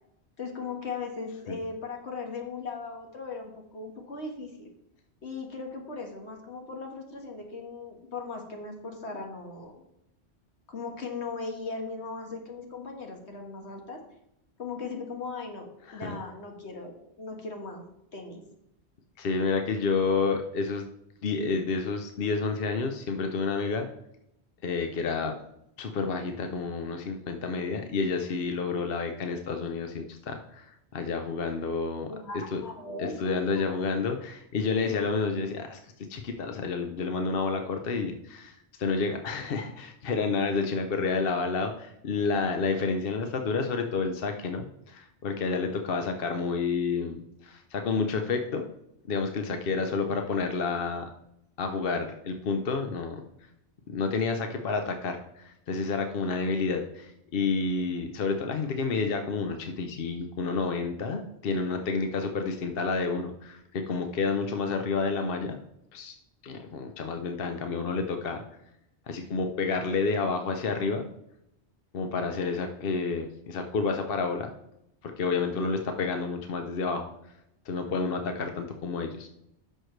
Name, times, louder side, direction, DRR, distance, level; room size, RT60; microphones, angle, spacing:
voice 1, 0.4-4.7 5.2-9.8 10.7-14.0 14.6-17.8 18.1-18.5 32.1-33.7, left 4 dB, 75° left, 2 dB, 1.8 m, -38 dB
voice 2, 19.2-20.9 21.2-23.9 24.6-25.3 25.8-32.1 32.5-32.6 33.0-48.6 49.1-51.1 51.6-53.2 53.9-65.6 65.9-66.1 66.4-68.4 69.1-71.1 71.9-74.5 75.0-77.1 77.7-79.3, left 4 dB, 60° left, 5 dB, 0.9 m, -30 dB
11.0 x 6.5 x 3.2 m, 0.82 s
omnidirectional pair, 1.1 m